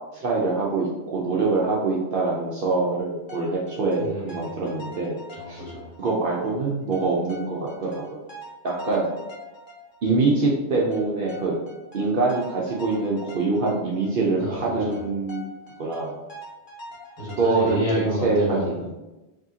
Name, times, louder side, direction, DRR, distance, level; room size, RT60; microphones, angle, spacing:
voice 1, 0.0-5.2 5.5-5.6 6.0-8.2 8.6-9.1 10.0-11.6 11.9-15.5 15.8-16.2 17.4-17.8 18.2-18.9, right 3 dB, 60° right, -4 dB, 0.8 m, -24 dB
sound 1, 3.0-6.2 6.4-6.5 6.9-10.5 10.9-14.2 14.4-14.5 14.9-17.8, left 1 dB, 50° left, 1.2 m, -43 dB
voice 2, 4.0-4.6 5.4-5.9 14.4-15.0 17.2-18.9, equal, 30° left, -7 dB, 1.5 m, -29 dB
4.9 x 2.7 x 2.8 m, 1.1 s
omnidirectional pair, 1.1 m